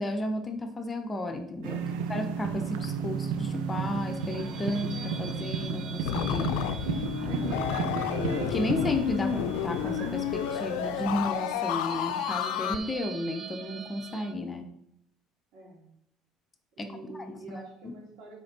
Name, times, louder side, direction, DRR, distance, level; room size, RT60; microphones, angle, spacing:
voice 1, 0.0-1.8 2.1-6.5 7.2-7.4 8.0-14.7 16.8-17.9, left 1 dB, 25° left, 5 dB, 1.0 m, -33 dB
sound 1, 1.6-11.3, right 6 dB, 90° right, 0.7 m, -34 dB
voice 2, 1.7-2.0 7.4-7.9 15.5-15.9 16.7-18.4, right 2 dB, 70° right, -1 dB, 3.0 m, -46 dB
sound 2, 3.5-14.3, right 5 dB, 45° right, 0.7 m, -46 dB
sound 3, 6.0-12.8, left 10 dB, 85° left, 0.5 m, -31 dB
7.7 x 4.5 x 5.6 m, 0.74 s
supercardioid pair, 95°, 0 cm